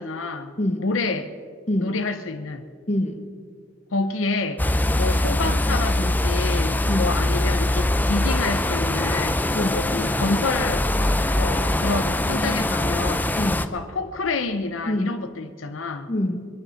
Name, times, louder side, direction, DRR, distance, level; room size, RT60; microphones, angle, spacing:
voice 1, 0.0-1.3 1.8-2.7 3.9-4.7 5.0-10.9 11.3-13.3 13.7-16.1, left 3 dB, 80° left, 8 dB, 0.7 m, -28 dB
voice 2, 0.6-0.9 1.7-2.0 2.9-3.2 6.9-7.2 9.5-9.9 13.4-13.7 14.9-15.2 16.1-16.5, left 1 dB, 35° left, 6 dB, 1.3 m, -25 dB
sound 1, 4.6-13.7, left 1 dB, 10° left, 0.5 m, -22 dB
23.5 x 9.8 x 5.7 m, 2.1 s
head